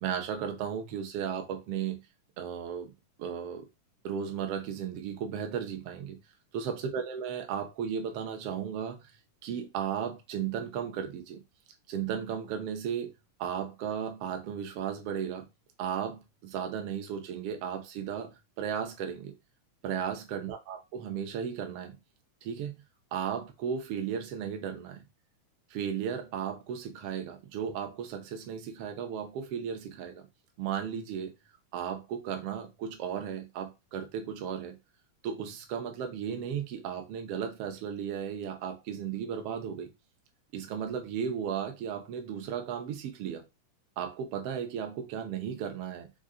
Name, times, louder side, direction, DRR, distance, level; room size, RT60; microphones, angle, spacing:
voice 1, 0.0-2.0 2.4-2.9 3.2-3.7 4.0-6.2 6.5-9.2 9.4-11.4 11.9-13.1 13.4-15.5 15.8-19.3 19.8-22.0 22.4-22.7 23.1-25.0 25.7-30.3 30.6-31.3 31.7-34.8 35.2-39.9 40.5-43.4 44.0-46.1, right 8 dB, 70° right, 1.5 m, -35 dB
5.4 x 2.4 x 3.7 m
omnidirectional pair, 3.7 m